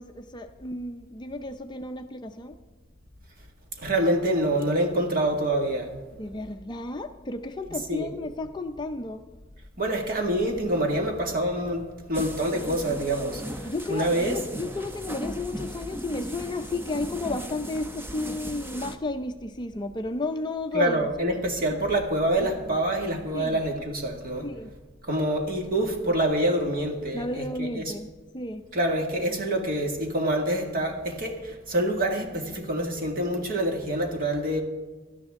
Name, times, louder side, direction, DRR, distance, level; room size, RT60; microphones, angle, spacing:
voice 1, 0.0-2.6 6.2-9.2 13.6-21.1 21.7-22.0 22.4-22.8 23.3-23.6 24.4-24.7 27.1-28.6, left 2 dB, 20° left, 6 dB, 0.5 m, -33 dB
voice 2, 3.8-5.9 7.9-8.1 9.8-11.8 12.1-13.4 13.9-14.4 20.7-24.5 25.1-27.9 28.7-31.3 31.7-34.6, right 1 dB, 45° right, 2 dB, 2.0 m, -26 dB
sound 1, 12.1-19.0, equal, 10° right, 0.7 m, -37 dB
17.5 x 12.5 x 3.7 m, 1.3 s
head